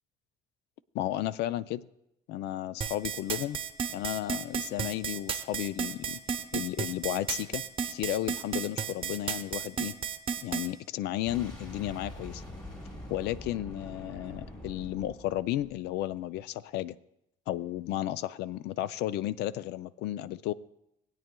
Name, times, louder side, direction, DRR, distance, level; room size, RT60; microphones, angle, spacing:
voice 1, 0.9-1.8 2.3-3.6 3.9-6.2 6.5-9.9 10.4-12.4 13.1-17.0 17.5-20.5, left 13 dB, 80° left, 17 dB, 0.4 m, -33 dB
sound 1, 2.8-10.7, right 7 dB, 35° right, 0.8 m, -33 dB
Boom, 11.3-16.1, left 1 dB, 25° left, 4.0 m, -44 dB
20.0 x 9.1 x 2.2 m, 0.80 s
cardioid pair, 110°, 17 cm